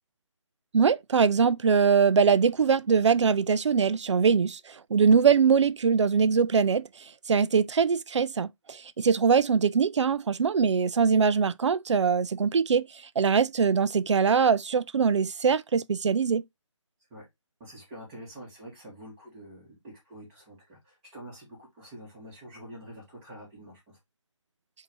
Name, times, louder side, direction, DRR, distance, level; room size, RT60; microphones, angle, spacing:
voice 1, 0.7-6.9 7.3-12.9 13.2-16.4, right 6 dB, 65° right, 0.4 m, -22 dB
voice 2, 17.6-24.0, equal, 15° right, 1.9 m, -46 dB
6.0 x 2.7 x 3.1 m
figure-of-eight pair, 165°, 16 cm